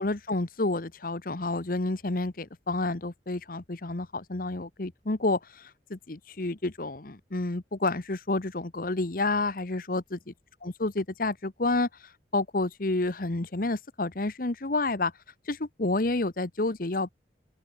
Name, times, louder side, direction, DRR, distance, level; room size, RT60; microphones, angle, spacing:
voice 1, 0.0-10.3 10.6-11.9 12.3-15.1 15.5-17.1, left 2 dB, 50° left, 1.1 m, -29 dB
open air
head